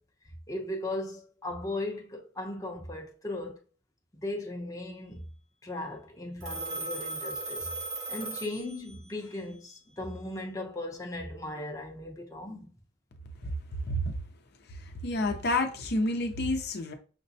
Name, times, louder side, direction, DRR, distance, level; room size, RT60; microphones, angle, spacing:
voice 1, 0.5-3.6 4.1-5.2 5.6-7.7 8.1-12.7, left 1 dB, 20° left, 0.7 m, -37 dB
Telephone, 6.4-9.1, right 3 dB, 80° right, 1.4 m, -37 dB
voice 2, 15.0-16.9, left 1 dB, 60° left, 0.6 m, -29 dB
5.8 x 2.1 x 2.6 m
head